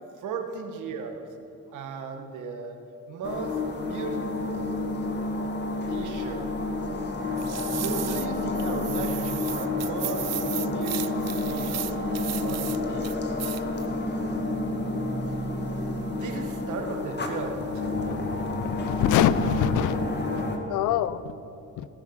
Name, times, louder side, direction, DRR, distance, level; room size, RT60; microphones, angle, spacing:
voice 1, 0.2-1.3 1.7-2.8 3.1-4.8 5.9-6.5 7.7-10.3 10.6-13.3 16.1-17.8, right 4 dB, 80° right, 5 dB, 1.4 m, -36 dB
sound 1, 3.2-20.6, left 2 dB, 35° left, 1.7 m, -29 dB
sound 2, 7.4-8.3 8.5-12.8 13.0-13.9 14.2-14.3, right 13 dB, 60° right, 0.6 m, -35 dB
voice 2, 18.6-20.0 20.3-20.4 20.7-21.2 21.8-21.9, left 10 dB, 85° left, 16 dB, 0.6 m, -25 dB
18.5 x 6.6 x 5.7 m, 2.8 s
cardioid pair, 90°, 30 cm